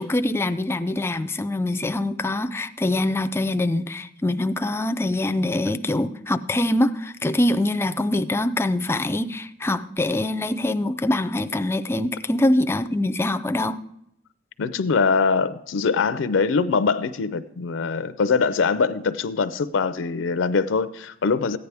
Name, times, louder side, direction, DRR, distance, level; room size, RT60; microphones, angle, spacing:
voice 1, 0.0-13.8, left 1 dB, 15° left, 12 dB, 0.4 m, -24 dB
voice 2, 14.6-21.6, left 5 dB, 70° left, 13 dB, 0.4 m, -23 dB
14.5 x 9.4 x 3.4 m, 0.77 s
head